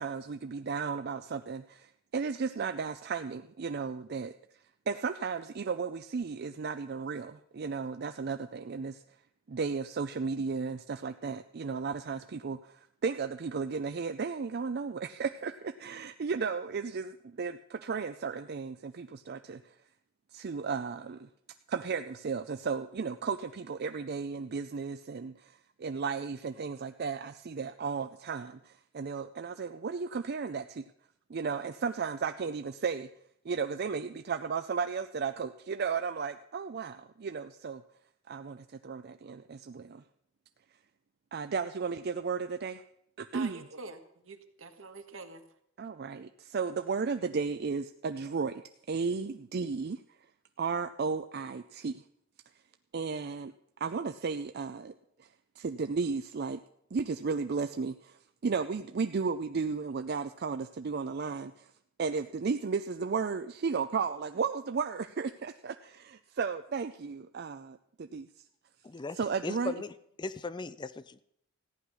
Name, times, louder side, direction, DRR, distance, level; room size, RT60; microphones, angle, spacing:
voice 1, 0.0-1.8 2.1-4.3 4.9-9.0 9.5-19.8 20.3-21.3 21.7-30.8 31.3-33.1 33.4-37.8 38.3-40.0 41.3-42.8 43.2-43.6 45.8-50.0 50.6-52.0 52.9-53.5 53.8-54.9 55.2-55.3 55.6-56.6 56.9-61.7 62.0-68.3 69.1-69.7, right 5 dB, 50° right, 9 dB, 0.4 m, -34 dB
voice 2, 43.3-45.4, right 4 dB, 85° right, 7 dB, 1.4 m, -45 dB
voice 3, 68.8-69.9 70.2-71.2, left 3 dB, 20° left, 15 dB, 0.4 m, -38 dB
14.5 x 9.9 x 6.2 m, 0.72 s
head